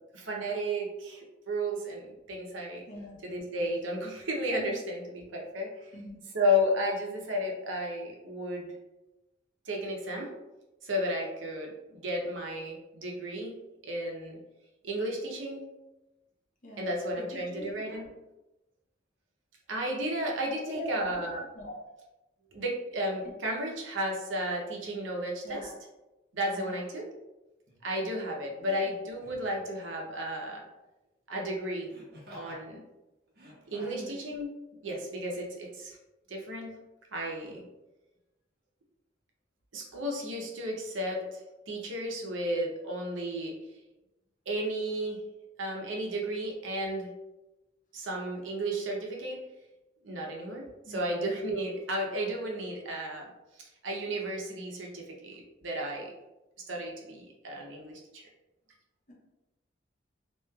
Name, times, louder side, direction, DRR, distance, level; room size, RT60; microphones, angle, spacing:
voice 1, 0.1-2.8 3.2-5.9 6.3-8.7 9.7-10.3 10.8-13.6 13.8-14.4 14.8-15.6 16.8-18.1 19.7-21.4 22.5-25.6 26.3-27.0 27.8-30.6 31.3-31.9 32.3-32.8 33.7-34.5 34.8-36.0 36.3-36.8 37.1-37.6 39.7-43.5 44.5-45.2 45.6-47.1 47.9-49.4 50.0-50.6 50.9-53.3 53.8-56.1 56.7-58.2, equal, 80° right, -1 dB, 0.7 m, -33 dB
voice 2, 2.9-3.2 5.9-6.2 16.6-16.9 17.2-18.0 20.5-21.2 21.5-21.8 23.2-23.3 25.4-25.7 26.5-26.8 28.6-29.0 33.8-34.3 50.8-51.0 59.1-59.2, equal, 40° left, -2 dB, 0.7 m, -43 dB
Laughter, 27.7-27.8 29.2-29.5 31.9-32.6 33.3-34.1 34.8-35.0, equal, 55° right, 0.8 m, -50 dB
3.0 x 2.7 x 2.3 m, 1.0 s
head